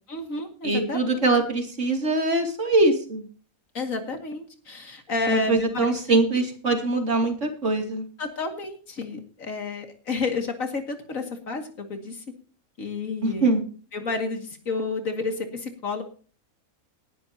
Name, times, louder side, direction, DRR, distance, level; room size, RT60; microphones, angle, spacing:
voice 1, 0.1-1.2 3.7-6.2 8.2-12.2 12.8-13.5 13.9-16.0, left 3 dB, 65° left, 5 dB, 2.5 m, -31 dB
voice 2, 0.6-3.2 5.3-8.0 13.2-13.6, right 2 dB, 55° right, 4 dB, 3.0 m, -23 dB
19.5 x 11.0 x 2.8 m, 0.39 s
omnidirectional pair, 1.5 m